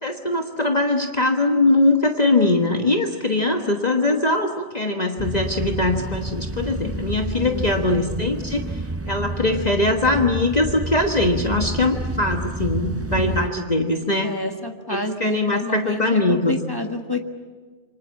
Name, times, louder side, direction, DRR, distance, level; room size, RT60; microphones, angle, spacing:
voice 1, 0.0-8.6 9.1-14.3 14.9-16.6, left 2 dB, 35° left, 3 dB, 1.5 m, -21 dB
sound 1, 5.2-13.5, right 2 dB, 15° right, 0.5 m, -29 dB
voice 2, 7.2-8.1 13.1-13.5 14.2-17.2, left 1 dB, 20° left, 3 dB, 1.6 m, -29 dB
27.5 x 24.5 x 7.3 m, 1.4 s
omnidirectional pair, 1.2 m